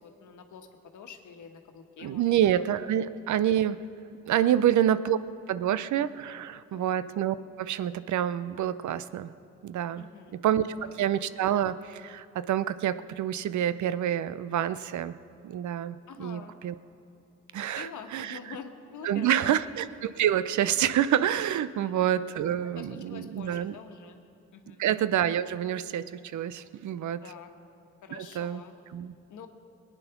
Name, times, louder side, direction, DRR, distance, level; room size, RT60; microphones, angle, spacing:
voice 1, 0.0-2.3 2.9-3.2 4.4-4.6 6.7-6.8 9.9-11.0 16.1-16.6 17.6-19.6 21.8-22.0 22.7-24.2 24.5-24.8 27.2-27.5 28.0-28.8 29.3-29.5, left 6 dB, 75° left, 5 dB, 1.3 m, -46 dB
voice 2, 2.0-3.8 4.3-5.2 5.5-9.3 9.6-10.0 10.4-10.6 11.0-15.1 15.4-16.7 17.5-18.4 19.0-23.7 24.8-27.2 28.1-28.6 28.9-29.1, right 10 dB, 70° right, 15 dB, 0.6 m, -27 dB
19.5 x 9.2 x 5.9 m, 2.8 s
supercardioid pair, 55°, 30 cm